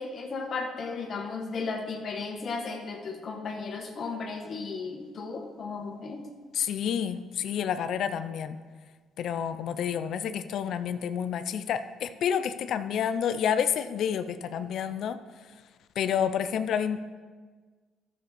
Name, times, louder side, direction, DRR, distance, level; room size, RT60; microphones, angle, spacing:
voice 1, 0.0-6.3, left 4 dB, 50° left, 2 dB, 1.1 m, -35 dB
voice 2, 6.5-8.6 9.2-15.2 16.0-17.0, left 8 dB, 70° left, 11 dB, 0.5 m, -29 dB
12.0 x 6.8 x 4.2 m, 1.5 s
cardioid pair, 85°, 0 cm